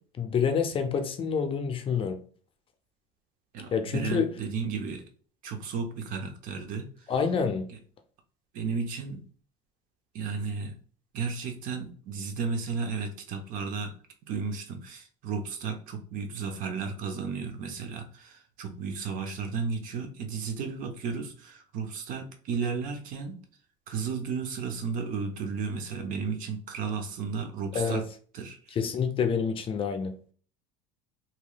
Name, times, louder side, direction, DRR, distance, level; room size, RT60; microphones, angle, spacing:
voice 1, 0.2-2.2 3.7-4.3 7.1-7.7 27.7-28.0 28.8-30.2, left 6 dB, 35° left, 0.5 m, -27 dB
voice 2, 3.5-5.0 5.4-6.9 8.5-9.2 10.1-10.7 11.1-13.9 14.2-23.4 23.9-28.0 28.3-28.8, right 5 dB, 55° right, 0.7 m, -33 dB
3.0 x 2.8 x 2.3 m
supercardioid pair, 95°, 16 cm